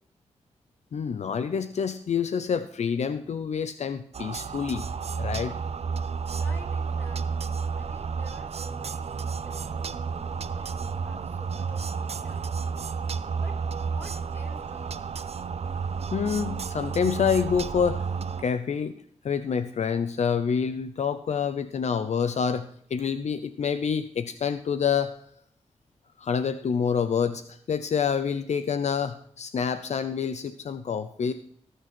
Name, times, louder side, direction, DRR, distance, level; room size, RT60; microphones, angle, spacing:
voice 1, 0.9-4.9 5.2-5.5 16.1-18.1 18.4-18.9 19.2-25.1 26.2-31.3, left 6 dB, 70° left, 11 dB, 0.7 m, -27 dB
sound 1, 4.1-18.4, right 5 dB, 60° right, 0.7 m, -31 dB
voice 2, 6.3-12.6 13.4-15.2, equal, 15° left, 1 dB, 4.9 m, -50 dB
19.5 x 6.6 x 4.5 m, 0.64 s
wide cardioid pair, 95°, 12 cm